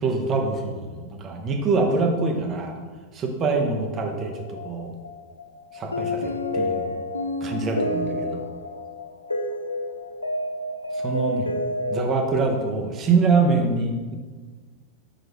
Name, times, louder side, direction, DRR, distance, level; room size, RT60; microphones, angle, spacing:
voice 1, 0.0-2.8 3.1-4.9 5.7-6.9 7.4-8.4 10.9-11.5 11.9-14.2, right 4 dB, 30° right, 3 dB, 1.0 m, -24 dB
sound 1, 4.3-12.5, left 1 dB, 80° left, 0.4 m, -29 dB
6.2 x 5.0 x 3.1 m, 1.4 s
figure-of-eight pair, 90°, 0 cm